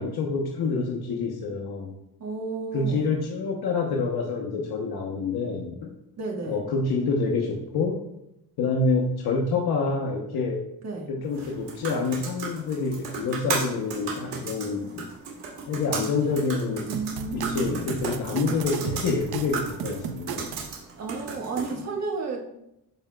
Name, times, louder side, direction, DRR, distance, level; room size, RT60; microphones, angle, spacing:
voice 1, 0.0-1.9 2.7-5.9 6.4-8.0 8.6-10.6 11.1-15.1 15.7-16.9 17.3-20.5, left 4 dB, 70° left, 1 dB, 0.9 m, -27 dB
voice 2, 2.2-3.1 6.2-6.6 10.8-11.1 16.9-17.8 21.0-22.4, right 3 dB, 40° right, 0 dB, 1.4 m, -32 dB
sound 1, 11.3-21.8, right 4 dB, 90° right, 2.8 m, -35 dB
sound 2, 16.9-20.7, right 9 dB, 70° right, 0.6 m, -35 dB
13.5 x 4.8 x 2.2 m, 0.84 s
cardioid pair, 145°, 39 cm